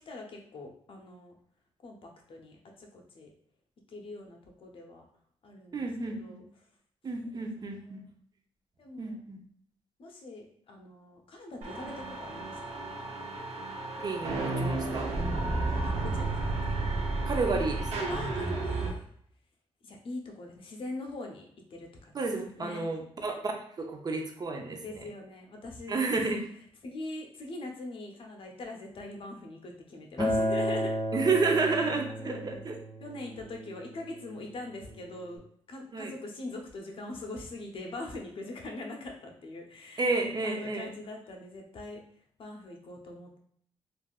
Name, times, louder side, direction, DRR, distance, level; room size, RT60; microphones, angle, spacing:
voice 1, 0.0-1.3 1.8-3.3 3.9-5.0 5.4-6.4 7.3-8.1 8.8-9.2 10.0-12.8 15.9-16.6 18.1-19.1 19.8-22.9 24.8-26.0 26.8-30.9 32.2-32.6 33.0-35.4 35.7-42.0 42.4-43.4, left 2 dB, 55° left, 2 dB, 0.7 m, -42 dB
voice 2, 5.7-6.4 7.0-8.0 9.0-9.4 14.0-15.1 17.3-18.1 22.1-25.0 25.9-26.4 30.2-30.3 31.1-32.8 35.9-36.1 40.0-40.9, right 3 dB, 40° right, 3 dB, 0.5 m, -31 dB
sound 1, 11.6-18.9, right 2 dB, 90° right, 0.8 m, -32 dB
Acoustic guitar, 30.2-35.4, equal, 35° left, 1.1 m, -33 dB
3.4 x 2.5 x 2.3 m, 0.63 s
cardioid pair, 95°, 11 cm